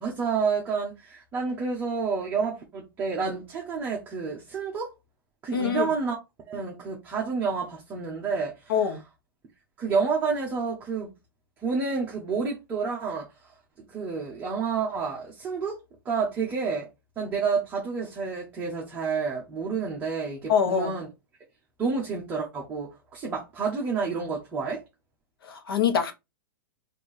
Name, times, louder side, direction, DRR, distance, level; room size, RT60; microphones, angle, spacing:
voice 1, 0.0-4.9 5.4-6.2 6.5-8.9 9.8-11.1 11.6-13.3 13.9-15.8 16.0-16.9 17.2-21.1 21.8-24.8, right 5 dB, 15° right, 0.9 m, -29 dB
voice 2, 5.5-5.9 8.7-9.0 20.5-20.9 25.4-26.1, left 7 dB, 80° left, 1.1 m, -24 dB
4.3 x 2.7 x 3.2 m
hypercardioid pair, 160°, 12 cm